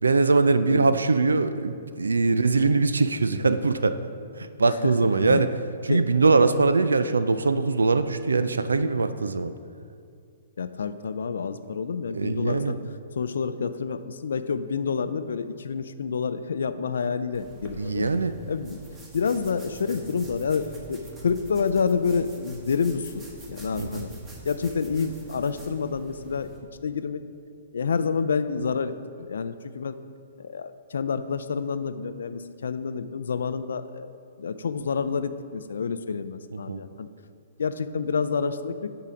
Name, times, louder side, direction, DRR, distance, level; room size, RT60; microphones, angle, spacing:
voice 1, 0.0-4.0 4.4-5.5 5.8-9.5 12.1-12.8 17.8-18.3 23.8-24.0 36.5-36.8, right 3 dB, 80° right, 12 dB, 0.3 m, -22 dB
voice 2, 0.7-1.0 4.6-5.5 5.9-6.1 10.6-12.8 13.1-18.1 18.5-18.8 19.1-24.1 24.4-26.5 26.8-27.2 27.7-28.9 29.2-30.0 30.4-34.1 34.4-37.1 37.6-38.9, left 5 dB, 70° left, 11 dB, 0.4 m, -28 dB
sound 1, 17.3-26.6, right 2 dB, 20° right, 1.4 m, -45 dB
8.7 x 4.7 x 5.1 m, 2.3 s
figure-of-eight pair, 120°, 0 cm